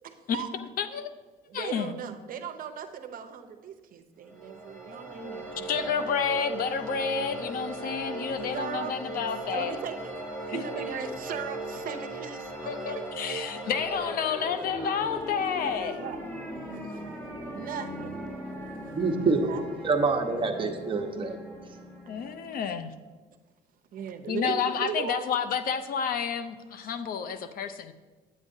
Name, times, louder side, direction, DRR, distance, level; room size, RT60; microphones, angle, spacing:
voice 1, 0.3-1.1 1.5-1.9 5.6-9.8 10.5-10.6 11.1-11.2 12.7-16.0 22.1-22.9 24.3-27.9, left 7 dB, 60° left, 10 dB, 0.6 m, -30 dB
voice 2, 1.5-5.7 8.5-8.9 9.5-10.1 10.5-13.1 16.0-16.2 16.9-17.0 17.5-18.1 19.2-19.6 23.9-25.3, right 7 dB, 55° right, 7 dB, 0.7 m, -37 dB
sound 1, 4.2-22.9, right 1 dB, 10° left, 1.7 m, -38 dB
voice 3, 18.9-19.5 19.8-21.4, right 4 dB, 30° right, 3 dB, 0.9 m, -26 dB
9.7 x 8.5 x 2.7 m, 1.3 s
cardioid pair, 110°, 17 cm